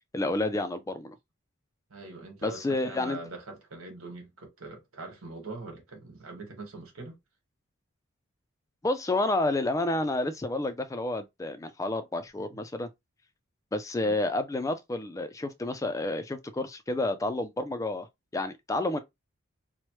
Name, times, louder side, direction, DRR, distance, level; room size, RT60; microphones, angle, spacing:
voice 1, 0.1-1.1 2.4-3.2 8.8-12.9 13.7-18.1 18.3-19.0, left 2 dB, 15° left, 0.3 m, -30 dB
voice 2, 1.9-7.1 14.0-14.1, right 3 dB, 90° right, 1.4 m, -42 dB
3.1 x 2.1 x 3.0 m
head